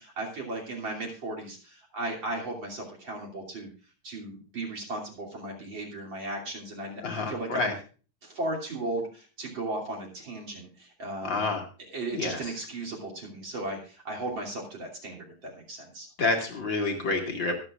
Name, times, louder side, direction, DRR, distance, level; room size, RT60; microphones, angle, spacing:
voice 1, 0.0-3.7 4.0-7.0 7.3-7.7 8.2-11.5 11.9-16.1, right 2 dB, 35° right, -2 dB, 3.4 m, -36 dB
voice 2, 7.0-7.7 11.2-11.6 12.1-12.4 16.2-17.6, left 3 dB, 40° left, 2 dB, 2.2 m, -28 dB
24.0 x 8.0 x 2.5 m, 0.36 s
omnidirectional pair, 3.9 m